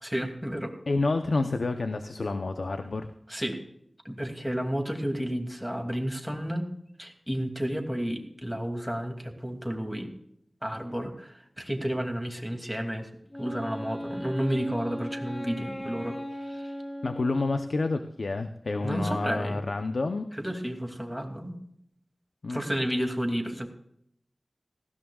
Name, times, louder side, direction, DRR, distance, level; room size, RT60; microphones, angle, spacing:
voice 1, 0.0-0.7 3.3-3.6 4.0-6.6 7.0-10.1 10.6-13.1 13.4-16.7 18.8-19.6 20.4-21.6 22.5-23.7, equal, 5° right, 3 dB, 2.6 m, -31 dB
voice 2, 0.9-3.1 17.0-20.2 22.4-22.6, left 3 dB, 85° left, 7 dB, 0.8 m, -29 dB
Wind instrument woodwind instrument, 13.3-18.1, equal, 25° left, 2.2 m, -38 dB
18.5 x 16.0 x 2.4 m, 0.72 s
wide cardioid pair, 65°, 0 cm